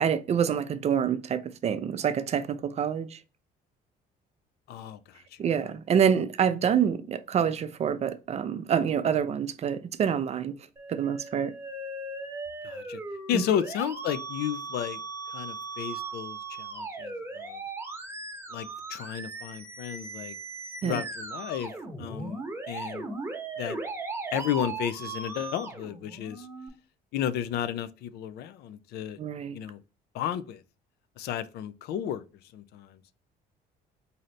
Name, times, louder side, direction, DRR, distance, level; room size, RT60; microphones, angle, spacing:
voice 1, 0.0-3.2 5.4-10.5 10.9-11.5 13.3-13.4 20.8-21.0 29.2-29.5, right 8 dB, 40° right, 0.4 m, -27 dB
voice 2, 4.7-5.4 12.6-13.0 13.3-15.0 15.3-17.6 18.5-20.3 20.8-21.7 22.0-22.4 22.7-23.1 23.6-23.8 24.3-26.5 27.1-29.2 29.5-29.8 30.1-30.6 31.2-32.2 32.5-33.0, left 10 dB, 70° left, 0.4 m, -33 dB
Musical instrument, 10.8-26.7, right 3 dB, 15° right, 0.9 m, -38 dB
3.8 x 2.7 x 3.2 m
cardioid pair, 110°, 17 cm